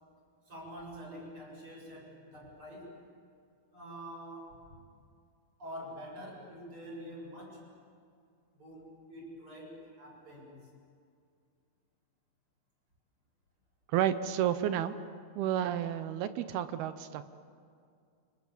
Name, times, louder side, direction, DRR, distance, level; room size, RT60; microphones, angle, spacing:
voice 1, 0.5-3.0 3.7-4.7 5.6-7.7 8.5-10.7, equal, 30° right, -2 dB, 7.9 m, -46 dB
voice 2, 13.9-15.0 15.4-17.3, right 10 dB, 75° right, 11 dB, 2.6 m, -31 dB
29.5 x 25.5 x 7.3 m, 2.3 s
omnidirectional pair, 4.8 m